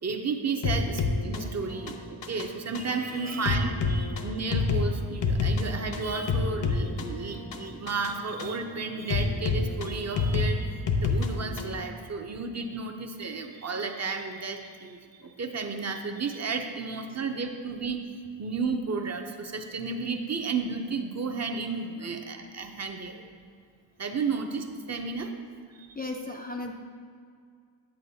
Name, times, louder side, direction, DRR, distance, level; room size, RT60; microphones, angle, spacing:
voice 1, 0.0-23.3 24.0-25.3 25.7-26.0, right 4 dB, 35° right, 4 dB, 0.6 m, -33 dB
sound 1, 0.6-11.8, left 4 dB, 70° left, 0.8 m, -29 dB
voice 2, 3.3-3.6 7.2-7.3 17.2-17.3 25.3-25.5 25.9-26.7, left 2 dB, 25° left, 1 dB, 0.3 m, -37 dB
9.0 x 8.4 x 2.7 m, 2.2 s
wide cardioid pair, 125°, 44 cm